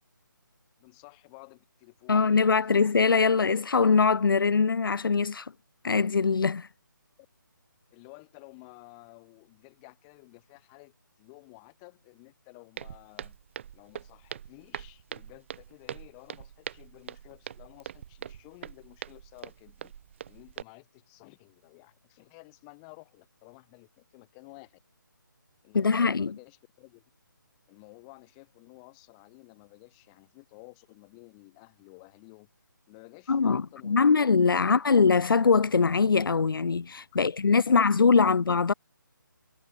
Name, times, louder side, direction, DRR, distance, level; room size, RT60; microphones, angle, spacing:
voice 1, 0.8-2.8 3.3-3.5 7.9-13.4 13.7-19.9 20.3-24.8 25.6-27.0 27.7-32.5 32.9-34.1 37.1-37.3 37.7-38.3, left 33 dB, 20° left, 3.9 m, -52 dB
voice 2, 2.1-5.5 5.8-6.7 25.7-26.3 33.3-38.7, left 5 dB, 90° left, 0.4 m, -22 dB
Walk footsteps, 12.8-20.6, right 9 dB, 35° right, 1.7 m, -43 dB
figure-of-eight pair, 160°, 11 cm